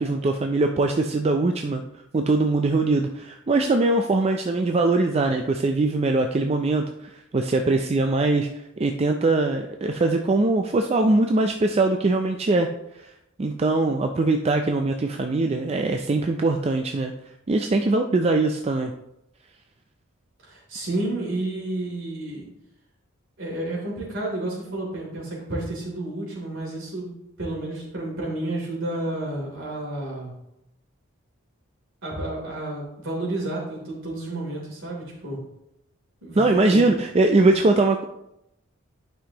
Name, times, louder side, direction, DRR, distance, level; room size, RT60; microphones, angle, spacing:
voice 1, 0.0-1.8 2.1-8.5 8.8-12.7 13.4-17.1 17.5-18.9 36.4-38.0, right 2 dB, 30° right, 4 dB, 0.4 m, -22 dB
voice 2, 20.4-22.5 23.4-27.1 27.4-30.3 32.0-35.4 36.2-36.9, right 1 dB, 65° right, -3 dB, 3.1 m, -31 dB
11.5 x 5.6 x 2.9 m, 0.84 s
head